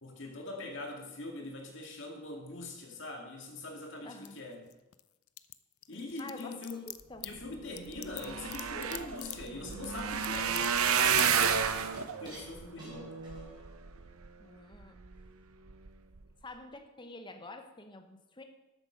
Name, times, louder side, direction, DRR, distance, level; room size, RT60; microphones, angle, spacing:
voice 1, 0.0-4.7 5.9-6.8 7.2-11.4 12.2-13.1, left 2 dB, 55° left, 1 dB, 2.2 m, -43 dB
sound 1, 3.4-5.0 5.3-10.9 11.1-11.5, left 17 dB, 85° left, 0.6 m, -43 dB
voice 2, 4.0-4.4 6.2-6.5 6.9-7.3 14.4-15.0 16.4-18.4, left 2 dB, 20° left, 6 dB, 0.9 m, -47 dB
sound 2, 7.6-7.7 7.9-14.3 14.8-15.3 15.7-15.9 16.2-16.3, right 7 dB, 80° right, 0.8 m, -31 dB
sound 3, 9.3-10.5 11.3-13.7 14.1-14.2, right 1 dB, 20° right, 4.5 m, -51 dB
12.5 x 8.1 x 5.1 m, 1.0 s
head